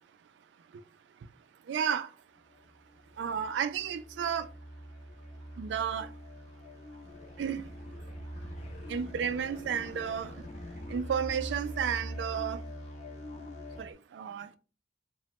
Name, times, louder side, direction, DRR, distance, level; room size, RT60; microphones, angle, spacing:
voice 1, 1.7-2.1 3.2-4.5 5.6-6.1 7.4-7.6 8.9-10.3 10.9-12.6 13.8-14.6, right 7 dB, 85° right, 0.3 m, -32 dB
sound 1, 2.5-13.9, equal, 40° left, 0.4 m, -44 dB
3.0 x 2.0 x 2.9 m
head